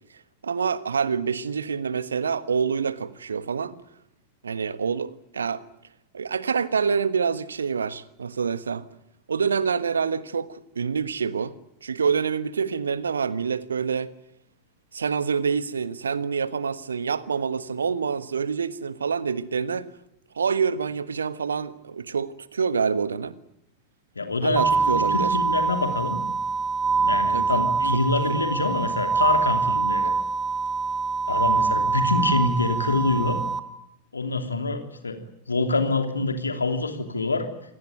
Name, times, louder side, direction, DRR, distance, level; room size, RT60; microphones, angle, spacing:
voice 1, 0.4-3.8 4.4-5.6 6.1-8.9 9.3-11.5 11.8-14.1 14.9-19.9 20.3-23.4 24.4-25.4 27.3-27.7 27.9-28.0 28.3-28.4, right 6 dB, 70° right, 1.3 m, -26 dB
voice 2, 24.1-26.2 27.0-30.1 31.3-33.4 34.1-35.2 35.5-37.5, left 3 dB, 75° left, 3.1 m, -26 dB
sound 1, 24.6-33.6, right 4 dB, 20° right, 1.7 m, -24 dB
27.5 x 18.0 x 9.4 m
figure-of-eight pair, 90°, 0 cm